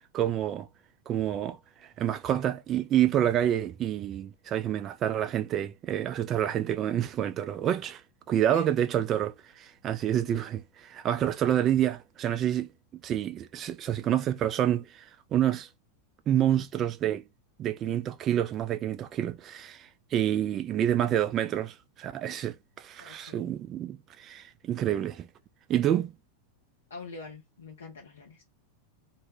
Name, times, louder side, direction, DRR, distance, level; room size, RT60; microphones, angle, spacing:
voice 1, 0.1-0.7 1.1-1.6 2.0-8.0 8.3-12.7 13.0-15.0 15.3-15.7 16.3-17.2 17.6-25.3 25.7-26.1, right 11 dB, 30° right, 0.3 m, -28 dB
voice 2, 23.0-23.5 26.9-28.4, left 4 dB, 70° left, 0.5 m, -45 dB
2.1 x 2.1 x 3.2 m
figure-of-eight pair, 90°, 0 cm